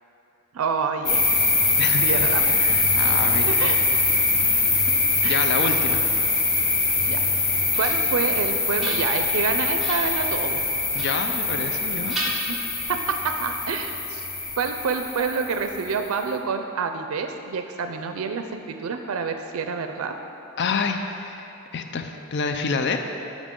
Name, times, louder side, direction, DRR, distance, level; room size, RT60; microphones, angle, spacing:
voice 1, 0.5-1.4 2.0-2.5 3.5-3.8 5.2-5.6 7.1-7.2 7.8-10.6 12.5-12.6 12.9-14.3 14.6-20.1, right 5 dB, 85° right, 6 dB, 0.4 m, -28 dB
sound 1, 1.1-16.1, left 3 dB, 85° left, 1.3 m, -23 dB
voice 2, 1.8-2.3 2.6-3.7 5.2-6.0 10.9-12.2 20.6-23.0, left 4 dB, 55° left, 6 dB, 0.5 m, -28 dB
sound 2, 7.7-8.2 8.6-9.4 9.8-10.2 11.0-11.8 12.1-13.0, right 1 dB, ahead, 1.5 m, -34 dB
12.5 x 5.1 x 3.7 m, 2.9 s
head